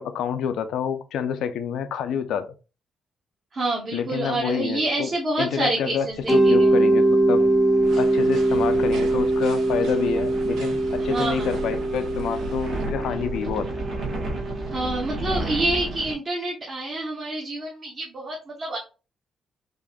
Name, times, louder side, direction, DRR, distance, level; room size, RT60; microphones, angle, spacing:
voice 1, 0.0-2.5 3.9-5.1 5.4-6.1 6.3-7.4 8.0-13.7, left 8 dB, 80° left, 10 dB, 0.4 m, -28 dB
voice 2, 3.5-6.7 11.0-11.5 14.7-18.8, right 2 dB, 35° right, -2 dB, 1.0 m, -27 dB
sound 1, 6.1-16.1, right 2 dB, 50° right, 1.4 m, -34 dB
Mallet percussion, 6.3-15.0, right 2 dB, 10° left, 0.5 m, -22 dB
sound 2, 7.8-12.9, right 4 dB, 75° right, 0.8 m, -42 dB
4.7 x 2.5 x 2.2 m, 0.31 s
cardioid pair, 145°, 0 cm